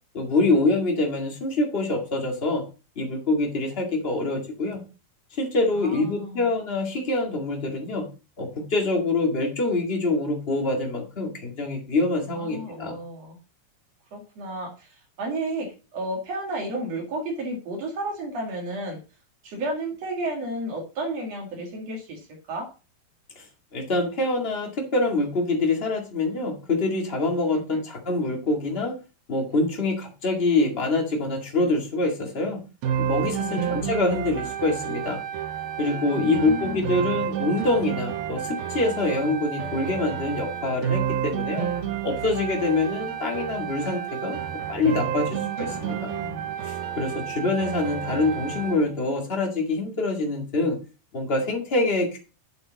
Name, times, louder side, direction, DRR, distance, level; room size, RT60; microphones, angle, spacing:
voice 1, 0.1-2.6 2.9-4.8 5.3-8.0 8.4-13.0 23.3-23.4 23.7-28.9 29.3-32.6 33.0-35.2 35.8-41.7 42.0-44.4 44.7-46.1 46.6-50.8 51.1-52.2, left 2 dB, 25° left, 1 dB, 1.4 m, -25 dB
voice 2, 5.8-6.5 12.3-13.4 14.1-19.0 19.4-22.7 27.5-27.8 33.4-33.8 36.1-36.9 45.2-46.5, right 1 dB, 50° right, 1 dB, 3.0 m, -33 dB
sound 1, 32.8-48.9, right 9 dB, 80° right, 2.9 m, -30 dB
7.9 x 7.8 x 4.1 m, 0.33 s
omnidirectional pair, 4.2 m